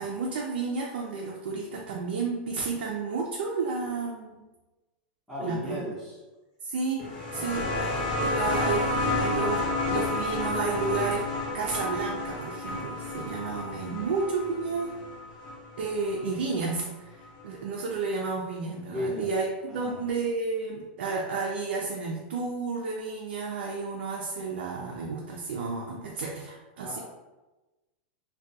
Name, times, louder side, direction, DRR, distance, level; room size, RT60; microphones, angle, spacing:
voice 1, 0.0-4.5 5.4-5.8 6.6-9.6 9.9-11.2 11.5-14.9 15.8-19.4 19.7-27.0, right 4 dB, 85° right, -2 dB, 0.4 m, -31 dB
voice 2, 5.3-6.2 7.3-7.6 18.9-19.3 19.7-20.0 26.8-27.0, left 1 dB, 5° left, -11 dB, 0.6 m, -35 dB
sound 1, 7.0-16.3 17.4-17.5, left 2 dB, 60° left, 1.0 m, -30 dB
2.3 x 2.2 x 2.6 m, 1.1 s
supercardioid pair, 140°, 6 cm